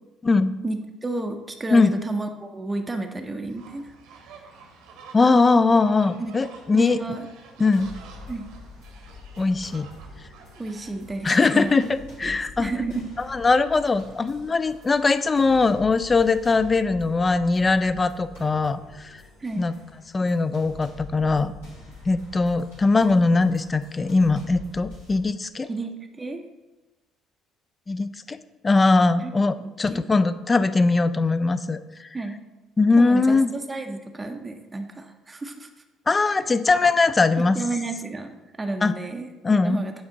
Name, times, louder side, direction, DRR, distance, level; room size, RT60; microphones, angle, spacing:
voice 1, 0.6-3.9 6.2-6.3 6.7-7.3 8.3-8.5 10.6-11.8 12.2-13.1 19.4-19.7 25.7-26.4 29.2-30.0 32.1-32.4 33.0-35.7 37.4-39.9, right 2 dB, 20° right, 5 dB, 0.6 m, -31 dB
sound 1, 3.5-11.8, right 4 dB, 65° right, 0.9 m, -48 dB
voice 2, 5.1-7.0 7.6-7.9 9.4-9.9 11.2-12.7 13.2-19.2 19.6-19.7 20.1-21.5 22.1-25.7 27.9-28.4 28.6-32.1 32.8-33.5 36.1-37.6 38.8-38.9 39.4-39.8, left 3 dB, 25° left, 13 dB, 0.3 m, -21 dB
sound 2, 7.7-25.2, left 3 dB, 75° left, 1.9 m, -45 dB
8.7 x 3.4 x 3.9 m, 1.1 s
figure-of-eight pair, 50°, 0 cm